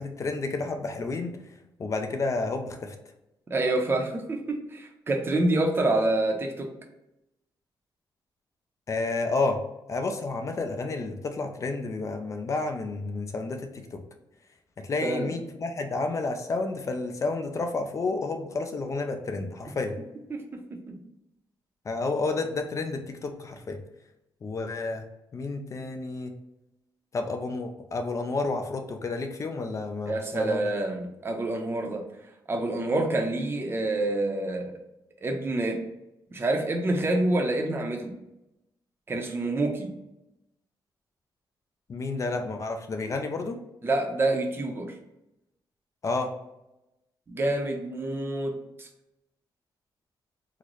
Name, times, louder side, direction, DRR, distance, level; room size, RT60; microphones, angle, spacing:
voice 1, 0.0-1.4 1.8-2.9 8.9-9.6 9.9-14.0 14.8-20.0 21.9-23.8 24.4-25.0 25.3-26.3 27.1-30.6 41.9-43.6 46.0-46.3, left 3 dB, 40° left, 5 dB, 0.4 m, -30 dB
voice 2, 3.5-6.7 15.0-15.3 20.3-21.0 30.1-32.0 32.5-34.8 35.2-35.8 36.3-38.1 39.1-39.9 43.8-45.0 47.3-48.9, right 2 dB, 25° right, 2 dB, 0.6 m, -27 dB
3.8 x 2.1 x 3.0 m, 0.91 s
cardioid pair, 130°, 8 cm